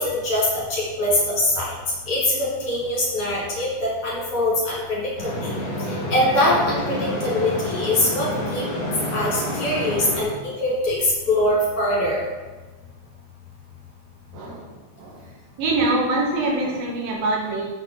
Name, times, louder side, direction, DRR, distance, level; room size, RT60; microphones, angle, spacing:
voice 1, 0.0-1.7 2.1-3.7 4.0-5.1 5.4-5.5 6.1-8.3 8.5-8.6 9.1-12.2, left 1 dB, 45° left, -6 dB, 3.1 m, -22 dB
sound 1, 5.2-10.2, equal, 80° left, 0.9 m, -28 dB
voice 2, 14.3-14.7 15.0-15.2 15.6-17.7, right 2 dB, 75° right, -1 dB, 3.1 m, -24 dB
7.1 x 5.8 x 6.3 m, 1.3 s
omnidirectional pair, 4.2 m